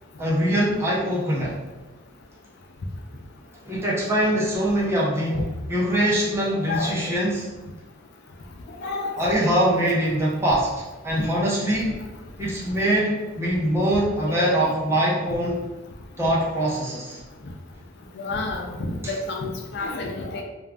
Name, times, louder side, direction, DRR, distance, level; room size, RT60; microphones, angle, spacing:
voice 1, 0.2-1.6 3.7-7.5 9.2-12.0 12.4-15.6 16.2-17.2, right 1 dB, 10° right, -5 dB, 0.5 m, -23 dB
voice 2, 6.7-7.0 8.8-9.3 11.2-11.3 14.3-14.7 18.2-20.4, left 2 dB, 50° left, 1 dB, 0.4 m, -29 dB
2.4 x 2.2 x 3.3 m, 1.1 s
head